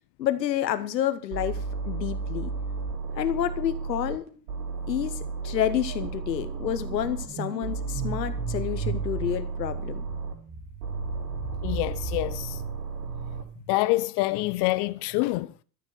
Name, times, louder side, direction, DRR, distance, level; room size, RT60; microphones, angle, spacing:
voice 1, 0.2-2.5 3.1-4.2 4.9-10.0, left 11 dB, 85° left, 1.0 m, -29 dB
sound 1, 1.3-4.2 4.5-7.3 7.6-10.3 10.8-13.4, right 4 dB, 70° right, 4.5 m, -33 dB
sound 2, 4.3-4.6 4.9-13.6, right 5 dB, 35° right, 2.6 m, -38 dB
voice 2, 11.6-12.6 13.7-15.6, left 19 dB, 55° left, 1.0 m, -26 dB
13.5 x 7.2 x 7.8 m
hypercardioid pair, 75°, 49 cm